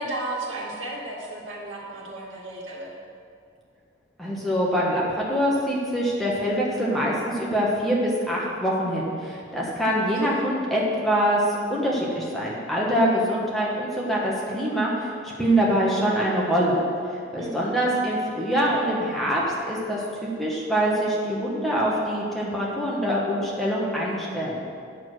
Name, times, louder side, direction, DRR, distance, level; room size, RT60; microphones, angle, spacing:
voice 1, 0.0-2.9 10.1-10.4 17.4-17.8, right 1 dB, 80° right, -3 dB, 2.0 m, -34 dB
voice 2, 4.2-16.8 17.3-24.6, equal, ahead, -5 dB, 1.4 m, -24 dB
8.9 x 6.9 x 6.2 m, 2.3 s
head